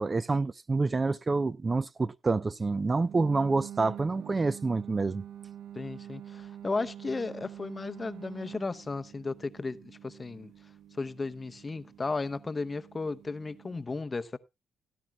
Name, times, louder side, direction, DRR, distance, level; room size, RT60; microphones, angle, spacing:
voice 1, 0.0-5.2, right 3 dB, 25° right, 0.5 m, -28 dB
sound 1, 3.0-13.8, right 10 dB, 75° right, 0.7 m, -47 dB
voice 2, 5.7-10.5 10.9-14.4, left 3 dB, 25° left, 0.8 m, -35 dB
17.5 x 10.5 x 2.3 m
cardioid pair, 90°, 0 cm